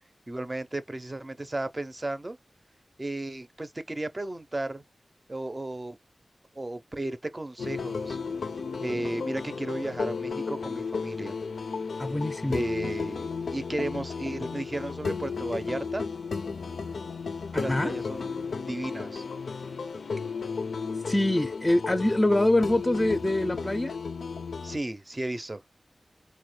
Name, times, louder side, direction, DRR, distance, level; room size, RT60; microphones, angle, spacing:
voice 1, 0.3-2.4 3.0-4.8 5.3-6.0 6.6-8.2 8.8-11.4 12.5-16.1 17.5-18.3 18.6-19.2 24.6-25.6, right 2 dB, 30° right, 0.5 m, -34 dB
sound 1, 7.6-24.8, left 5 dB, 90° left, 0.4 m, -34 dB
voice 2, 12.0-12.6 17.7-17.9 21.1-23.9, left 1 dB, 20° left, 0.4 m, -24 dB
4.0 x 2.1 x 3.2 m
cardioid pair, 50°, 0 cm